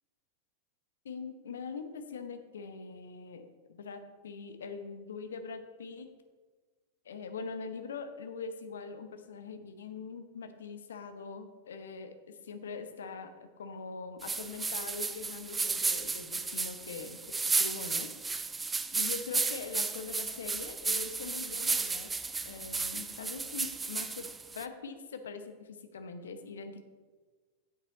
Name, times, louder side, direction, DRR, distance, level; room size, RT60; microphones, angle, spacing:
voice 1, 1.0-6.1 7.0-18.1 18.9-22.1 22.4-26.9, left 5 dB, 65° left, 8 dB, 0.9 m, -43 dB
sound 1, 14.2-24.7, right 4 dB, 15° right, 0.4 m, -33 dB
8.9 x 7.8 x 4.0 m, 1.4 s
figure-of-eight pair, 90°, 0 cm